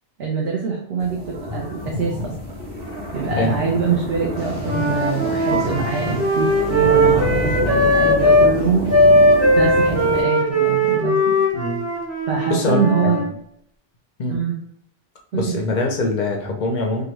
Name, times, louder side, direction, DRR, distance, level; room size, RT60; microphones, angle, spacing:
voice 1, 0.2-2.3 3.1-8.9 9.5-11.4 12.3-13.4 14.3-14.6 15.3-15.6, right 5 dB, 65° right, -1 dB, 0.8 m, -24 dB
sound 1, 1.0-10.2, left 1 dB, 85° right, 1.3 m, -28 dB
Wind instrument woodwind instrument, 4.6-8.5 8.9-13.3, equal, 20° right, 0.4 m, -18 dB
voice 2, 12.5-13.1 14.2-14.4 15.3-17.0, left 2 dB, 55° left, 2 dB, 0.5 m, -23 dB
2.9 x 2.3 x 2.9 m, 0.73 s
omnidirectional pair, 1.2 m